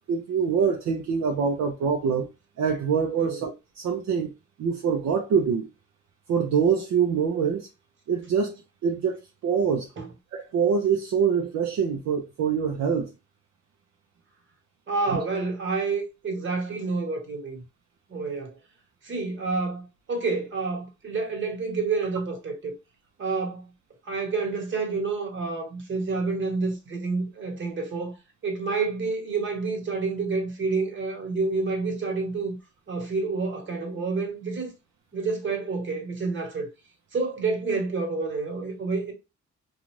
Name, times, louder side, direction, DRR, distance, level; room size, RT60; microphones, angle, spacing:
voice 1, 0.1-2.3 2.6-4.3 4.6-5.7 6.3-7.7 8.1-9.2 9.4-9.9 10.3-13.1, right 6 dB, 65° right, 0.6 m, -24 dB
voice 2, 14.9-17.6 18.1-18.6 19.0-22.7 23.2-23.7 24.0-28.1 28.4-32.5 32.9-34.7 35.1-36.7 37.1-39.1, right 4 dB, 40° right, 1.2 m, -29 dB
2.5 x 2.4 x 3.1 m
cardioid pair, 90°, 30 cm